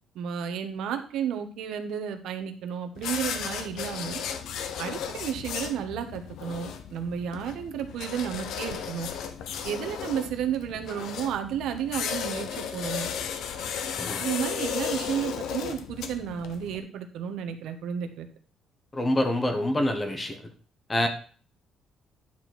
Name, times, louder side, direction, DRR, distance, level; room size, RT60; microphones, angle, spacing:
voice 1, 0.1-4.2 4.8-9.1 9.6-13.1 14.2-18.3, right 8 dB, 75° right, 6 dB, 1.3 m, -32 dB
sound 1, 2.9-16.8, left 8 dB, 75° left, 0.9 m, -35 dB
voice 2, 18.9-20.4 20.9-21.1, left 1 dB, 15° left, 6 dB, 1.3 m, -26 dB
10.5 x 4.6 x 6.1 m, 0.43 s
cardioid pair, 140°, 0 cm